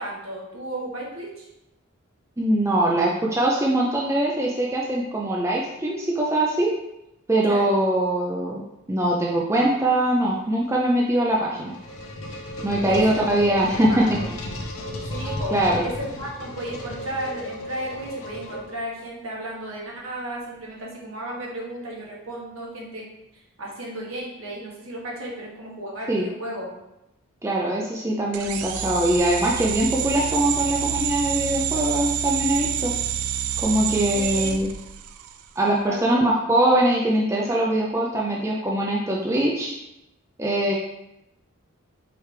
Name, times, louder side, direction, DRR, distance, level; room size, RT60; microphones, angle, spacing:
voice 1, 0.0-1.5 7.5-7.7 12.9-14.3 15.1-15.5 15.8-23.0 23.6-26.7 34.1-34.6 35.9-36.2, right 1 dB, 70° right, -2 dB, 1.2 m, -34 dB
voice 2, 2.4-6.7 7.3-8.6 8.9-11.7 12.6-14.0 15.5-15.8 26.1-26.3 27.4-32.9 33.6-34.7 35.6-39.7 40.4-40.7, right 1 dB, 15° right, -2 dB, 0.3 m, -22 dB
sound 1, 11.3-19.1, left 1 dB, 75° left, 0.6 m, -34 dB
sound 2, 28.3-35.4, right 9 dB, 85° right, 0.3 m, -28 dB
4.8 x 3.2 x 3.2 m, 0.87 s
head